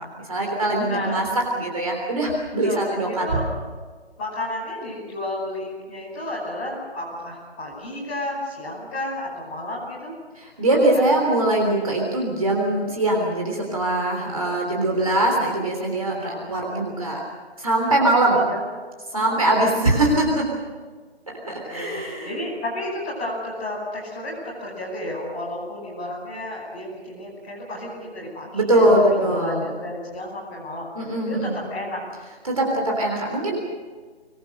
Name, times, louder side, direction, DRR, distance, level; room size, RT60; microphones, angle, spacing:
voice 1, 0.2-1.3 1.5-3.4 10.4-17.2 17.6-18.4 19.1-20.5 21.4-22.3 28.5-29.7 31.0-31.5 32.4-33.6, right 1 dB, 30° right, 0 dB, 3.5 m, -22 dB
voice 2, 0.9-1.2 2.6-3.4 4.2-10.1 11.0-11.2 16.1-16.4 18.3-18.6 19.1-19.5 21.5-28.8 29.2-30.9 31.2-32.0, left 1 dB, 10° left, -9 dB, 5.5 m, -32 dB
25.5 x 21.5 x 6.6 m, 1.5 s
figure-of-eight pair, 180°, 33 cm